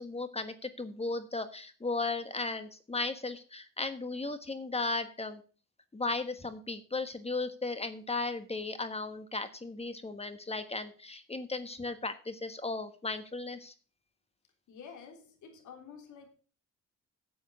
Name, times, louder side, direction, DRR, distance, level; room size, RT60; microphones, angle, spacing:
voice 1, 0.0-5.4 5.9-13.7, left 3 dB, 20° left, 10 dB, 1.4 m, -36 dB
voice 2, 14.7-16.3, left 6 dB, 75° left, 4 dB, 3.4 m, -49 dB
9.3 x 7.9 x 6.2 m, 0.39 s
cardioid pair, 90°, 30 cm